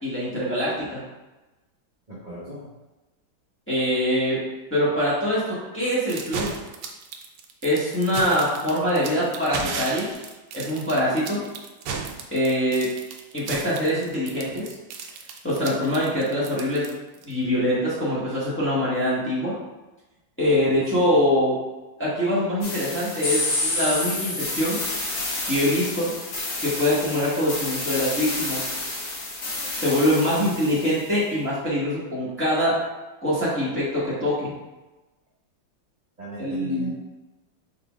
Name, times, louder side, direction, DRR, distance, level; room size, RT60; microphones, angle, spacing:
voice 1, 0.0-1.0 3.7-4.4 4.7-6.5 7.6-10.1 10.5-11.4 12.3-12.9 13.3-14.7 15.4-16.9 17.3-19.5 20.4-21.6 22.0-24.8 25.4-26.1 26.6-28.7 29.8-32.8 33.2-34.5 36.4-36.9, equal, 10° left, -9 dB, 1.1 m, -24 dB
voice 2, 2.1-2.7 20.7-21.1 36.2-36.9, right 2 dB, 30° right, -10 dB, 0.9 m, -36 dB
sound 1, 6.1-17.3, right 5 dB, 80° right, 1.3 m, -34 dB
sound 2, 22.6-31.1, left 2 dB, 50° left, 1.2 m, -29 dB
5.7 x 3.7 x 2.4 m, 1.1 s
omnidirectional pair, 2.0 m